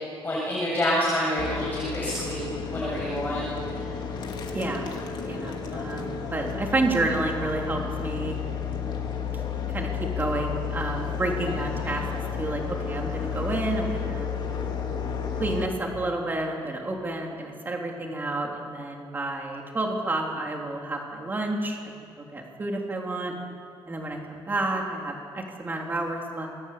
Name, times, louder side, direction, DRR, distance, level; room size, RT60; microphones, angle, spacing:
voice 1, 0.2-3.4 3.7-3.8, left 1 dB, 20° left, -5 dB, 7.2 m, -27 dB
sound 1, 1.4-15.7, left 6 dB, 50° left, 3.3 m, -32 dB
voice 2, 4.5-4.9 5.3-8.4 9.5-9.9 10.2-12.0 12.4-14.3 15.4-23.3 23.9-26.5, right 2 dB, 20° right, 1 dB, 3.6 m, -30 dB
28.0 x 22.5 x 8.6 m, 2.6 s
cardioid pair, 170°, 10 cm